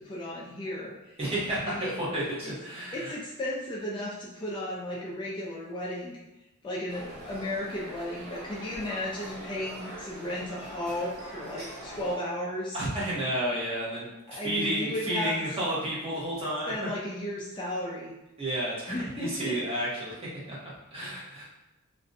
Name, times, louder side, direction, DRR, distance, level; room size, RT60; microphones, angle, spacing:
voice 1, 0.0-1.2 1.6-2.1 2.4-2.5 2.9-6.2 6.6-12.8 14.3-15.3 16.7-18.1 18.9-19.6, left 1 dB, 20° left, -4 dB, 0.3 m, -34 dB
voice 2, 1.2-3.1 12.7-14.1 14.4-16.7 18.4-20.2 20.5-21.5, right 1 dB, 25° right, -7 dB, 0.8 m, -31 dB
sound 1, 6.9-12.1, equal, 85° right, 1.0 m, -43 dB
2.5 x 2.1 x 2.5 m, 1.0 s
head